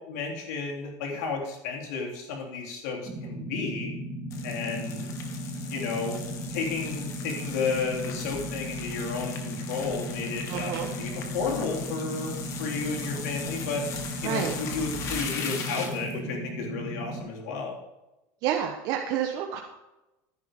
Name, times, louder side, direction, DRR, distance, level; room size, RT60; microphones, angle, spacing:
voice 1, 0.1-3.9 4.4-5.0 5.7-6.2 6.5-13.8 14.2-17.8, left 4 dB, 80° left, 0 dB, 3.5 m, -32 dB
sound 1, 3.0-17.2, right 1 dB, 20° right, 3.7 m, -36 dB
sound 2, 4.3-16.2, left 5 dB, 35° left, 1.8 m, -39 dB
voice 2, 10.5-10.9 14.2-14.5 18.4-19.6, right 9 dB, 45° right, 2 dB, 1.2 m, -29 dB
14.5 x 10.5 x 3.7 m, 0.99 s
cardioid pair, 165°, 9 cm